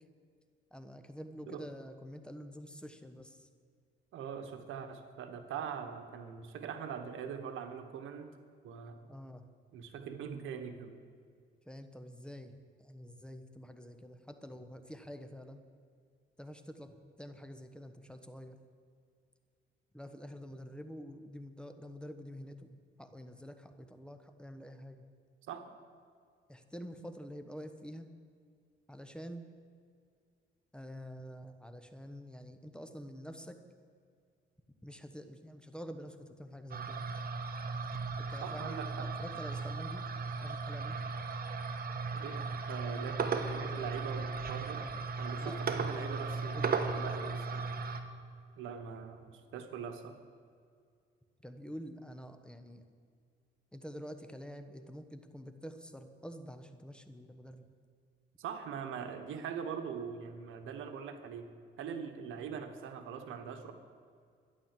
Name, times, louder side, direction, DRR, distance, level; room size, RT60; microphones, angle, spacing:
voice 1, 0.7-3.5 9.1-9.4 11.6-15.6 16.4-18.6 19.9-25.1 26.5-28.1 28.9-29.5 30.7-33.6 34.8-37.1 38.2-40.1 40.4-41.0 44.7-44.9 45.4-45.6 46.3-47.0 51.4-52.8 53.7-57.7, equal, 5° left, 8 dB, 1.1 m, -47 dB
voice 2, 4.1-8.3 8.6-9.0 9.7-10.9 25.5-25.6 38.4-39.1 42.1-44.8 45.2-47.7 48.6-50.2 58.4-61.5 61.8-63.7, right 7 dB, 85° right, 7 dB, 1.3 m, -42 dB
sound 1, 36.7-48.0, right 4 dB, 50° right, 1.3 m, -36 dB
12.5 x 10.5 x 7.5 m, 2.2 s
cardioid pair, 90°, 20 cm